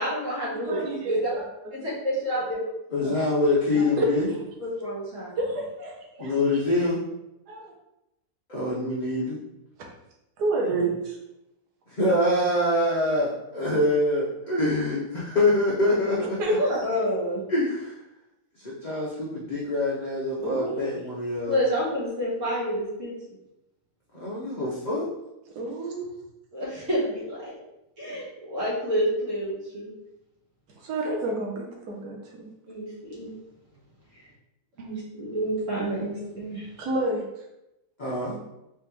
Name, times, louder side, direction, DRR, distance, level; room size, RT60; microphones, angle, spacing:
voice 1, 0.0-1.3 1.8-2.6 3.7-3.8 4.6-5.3 16.6-17.4 21.5-23.1 26.5-27.5 28.0-29.9 32.7-33.3 34.8-36.7, equal, 50° right, -7 dB, 2.0 m, -28 dB
voice 2, 0.7-1.8 2.3-2.4 3.0-3.1 4.0-4.4 5.4-6.3 7.5-7.7 10.4-11.2 16.4-16.6 20.4-20.8 25.4-26.1 30.8-32.4 34.8-34.9 36.8-37.3, right 1 dB, 90° right, -1 dB, 1.4 m, -29 dB
voice 3, 2.9-4.3 6.2-7.0 8.5-9.4 12.0-16.4 17.5-17.9 18.8-21.5 24.2-25.1 38.0-38.4, left 1 dB, 40° left, -7 dB, 0.7 m, -25 dB
4.2 x 3.4 x 3.0 m, 0.88 s
omnidirectional pair, 1.7 m